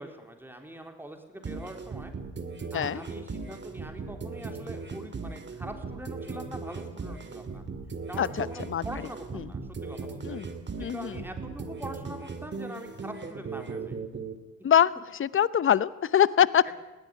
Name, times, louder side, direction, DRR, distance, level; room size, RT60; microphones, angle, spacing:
voice 1, 0.0-2.1 2.7-7.6 8.1-10.4 10.8-14.0 16.6-16.7, right 1 dB, 5° right, 4 dB, 3.8 m, -43 dB
sound 1, 1.4-14.3, right 4 dB, 40° right, 2.3 m, -38 dB
voice 2, 8.2-8.8 10.2-10.5 10.8-11.2 14.6-14.9 15.2-16.7, left 9 dB, 45° left, 18 dB, 0.9 m, -23 dB
20.5 x 16.0 x 9.8 m, 1.1 s
cardioid pair, 90°, 30 cm